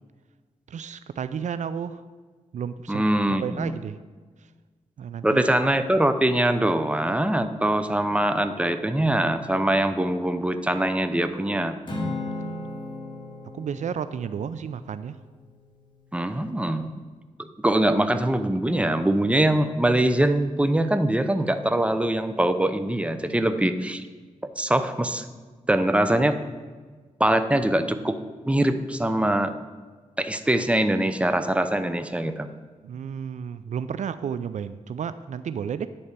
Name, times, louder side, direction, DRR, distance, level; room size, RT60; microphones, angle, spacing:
voice 1, 0.7-2.0 2.5-4.0 5.0-5.4 13.5-15.2 32.8-35.9, right 7 dB, 70° right, 12 dB, 0.4 m, -32 dB
voice 2, 2.9-3.8 5.2-11.8 16.1-16.9 17.6-24.0 24.6-25.2 25.7-26.4 27.2-28.2 28.4-29.5 30.2-32.5, right 1 dB, 10° right, 9 dB, 0.7 m, -23 dB
Acoustic guitar / Strum, 11.9-16.3, left 2 dB, 40° left, 1.9 m, -36 dB
10.5 x 4.2 x 6.6 m, 1.4 s
cardioid pair, 60°, 13 cm